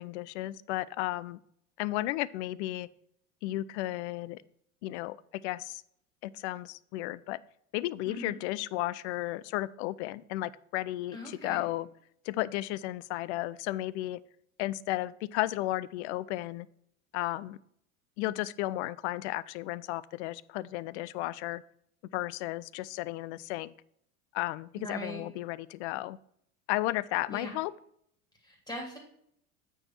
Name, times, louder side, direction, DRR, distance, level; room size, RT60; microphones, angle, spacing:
voice 1, 0.0-1.4 1.8-2.9 3.4-4.4 4.8-5.2 5.4-5.8 6.2-7.4 7.7-11.9 12.3-14.2 14.6-16.7 17.1-17.6 18.2-21.6 22.1-23.7 24.3-26.2 26.7-27.7, left 17 dB, 55° left, 20 dB, 0.5 m, -34 dB
voice 2, 8.0-8.4 11.1-11.7 24.7-25.2 27.3-27.6 28.4-29.0, right 1 dB, 10° left, -1 dB, 2.7 m, -40 dB
8.5 x 4.7 x 4.4 m, 0.71 s
hypercardioid pair, 80°, 41 cm